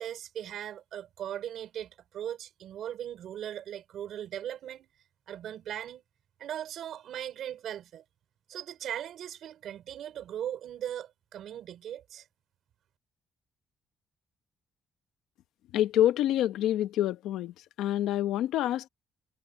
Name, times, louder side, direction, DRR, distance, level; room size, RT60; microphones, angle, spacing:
voice 1, 0.0-4.9 5.3-6.0 6.4-8.0 8.5-12.2, right 10 dB, 75° right, 4.9 m, -39 dB
voice 2, 15.7-18.9, left 12 dB, 90° left, 1.0 m, -27 dB
cardioid pair, 90°, 0 cm